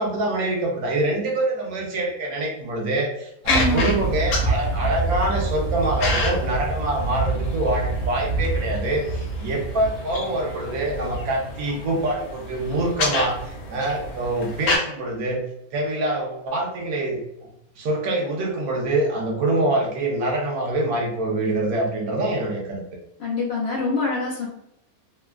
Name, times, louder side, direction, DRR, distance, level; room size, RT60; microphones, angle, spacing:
voice 1, 0.0-15.4 15.7-17.5 17.8-22.8, right 2 dB, 75° right, -1 dB, 1.2 m, -25 dB
sound 1, 3.4-14.8, right 1 dB, 75° left, 1.1 m, -26 dB
voice 2, 3.5-4.0 23.2-24.5, left 3 dB, 55° left, -4 dB, 0.8 m, -25 dB
3.1 x 2.3 x 2.2 m, 0.79 s
omnidirectional pair, 1.6 m